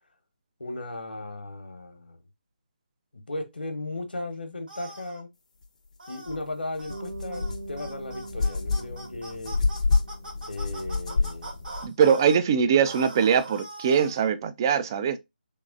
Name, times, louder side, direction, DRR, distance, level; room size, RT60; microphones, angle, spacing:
voice 1, 0.6-2.2 3.1-5.3 6.1-9.6 10.5-11.7, left 2 dB, 75° left, 1.0 m, -36 dB
sound 1, 4.7-5.2 6.0-6.4 6.8-7.0 7.3-7.5 7.8-12.4 12.8-14.3, right 2 dB, 60° right, 1.5 m, -42 dB
sound 2, 6.3-6.4 6.8-11.9, left 4 dB, 45° left, 0.6 m, -28 dB
Bass guitar, 6.9-11.2, right 2 dB, 80° right, 1.0 m, -43 dB
voice 2, 11.8-15.2, right 7 dB, 25° right, 0.3 m, -22 dB
3.5 x 3.2 x 2.4 m
figure-of-eight pair, 150°, 5 cm